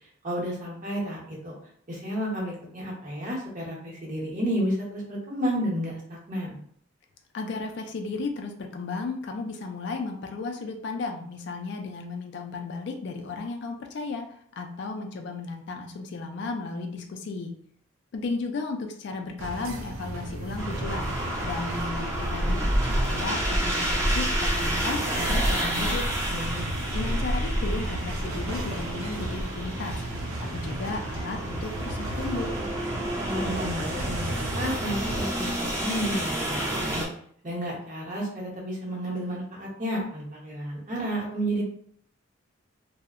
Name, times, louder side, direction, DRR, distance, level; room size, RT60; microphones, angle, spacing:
voice 1, 0.2-1.5 1.9-6.6 26.3-26.7 33.2-37.1 37.4-41.6, equal, 40° right, -4 dB, 0.8 m, -31 dB
voice 2, 7.3-17.5 18.1-21.1 21.4-26.1 26.9-32.6, left 3 dB, 55° left, 4 dB, 0.3 m, -34 dB
sound 1, 19.4-35.2, right 1 dB, 85° right, 0.4 m, -35 dB
sound 2, 20.6-37.1, right 1 dB, 15° right, 0.5 m, -29 dB
2.6 x 2.0 x 2.4 m, 0.62 s
head